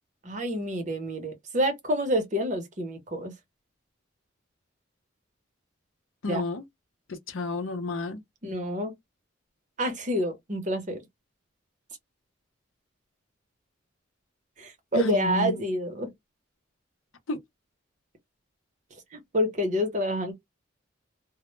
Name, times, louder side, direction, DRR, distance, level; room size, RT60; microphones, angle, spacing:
voice 1, 0.2-3.3 6.3-6.4 8.4-8.9 9.8-11.0 14.6-16.1 19.1-20.3, equal, 35° right, 0.7 m, -28 dB
voice 2, 6.2-6.6 7.1-8.2 14.9-15.7 17.3-17.4, left 3 dB, 80° left, 0.6 m, -31 dB
2.0 x 2.0 x 3.0 m
head